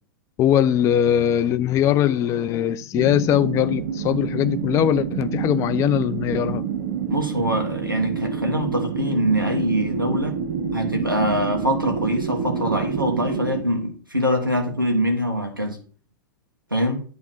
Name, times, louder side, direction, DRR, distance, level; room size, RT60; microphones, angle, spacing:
voice 1, 0.4-6.6, left 10 dB, 30° left, 0.5 m, -21 dB
sound 1, 2.9-13.6, right 7 dB, 45° right, 1.2 m, -28 dB
voice 2, 7.1-10.3 10.7-15.8 16.7-17.0, equal, 85° right, 1.6 m, -23 dB
10.5 x 3.6 x 6.6 m
figure-of-eight pair, 100°, 11 cm